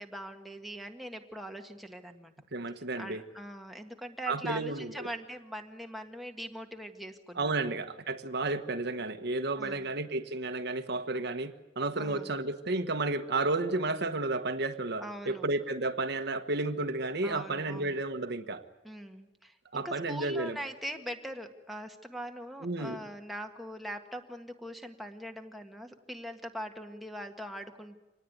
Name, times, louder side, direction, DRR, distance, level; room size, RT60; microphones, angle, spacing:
voice 1, 0.0-2.3 3.0-7.5 9.6-9.9 11.9-12.3 15.0-15.5 17.2-18.0 18.8-28.0, equal, ahead, 3 dB, 1.7 m, -42 dB
voice 2, 2.5-3.2 4.3-5.1 7.4-18.6 19.7-20.6 22.6-23.0, right 2 dB, 65° right, 8 dB, 1.3 m, -32 dB
26.0 x 19.0 x 9.5 m, 1.0 s
head